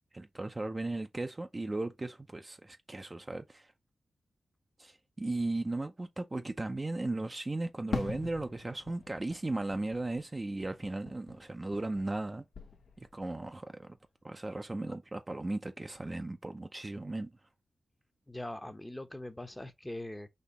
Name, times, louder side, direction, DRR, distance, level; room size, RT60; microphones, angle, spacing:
voice 1, 0.1-3.7 4.8-12.4 13.0-14.0 14.2-17.3, right 2 dB, 25° right, 0.5 m, -36 dB
Fireworks, 7.9-12.3 12.5-13.3, left 4 dB, 75° left, 0.7 m, -43 dB
voice 2, 18.3-20.3, left 1 dB, 10° left, 0.7 m, -42 dB
4.1 x 2.8 x 4.0 m
cardioid pair, 80°, 0 cm